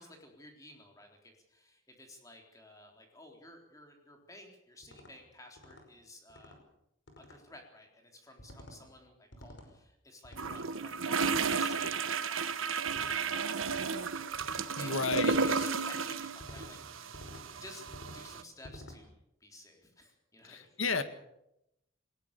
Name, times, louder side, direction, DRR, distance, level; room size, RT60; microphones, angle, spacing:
voice 1, 0.0-6.5 7.2-14.3 14.7-17.9 18.1-19.1 19.4-20.7, left 1 dB, 15° left, 2 dB, 3.9 m, -53 dB
sound 1, 4.8-5.1 5.6-5.8 6.3-6.6 7.1-7.4 8.4-8.8 9.3-9.7 10.2-10.6 11.2-11.6 12.9-13.2 13.6-13.9 14.3-14.7 15.1-15.4 16.4-16.7 17.1-17.4 17.9-18.2 18.6-19.0, left 1 dB, 65° left, 5.2 m, -50 dB
sound 2, 10.4-18.4, right 5 dB, 85° right, 1.3 m, -33 dB
voice 2, 14.8-15.3 20.4-21.0, left 4 dB, 85° left, 10 dB, 1.9 m, -32 dB
21.0 x 19.5 x 6.9 m, 0.82 s
head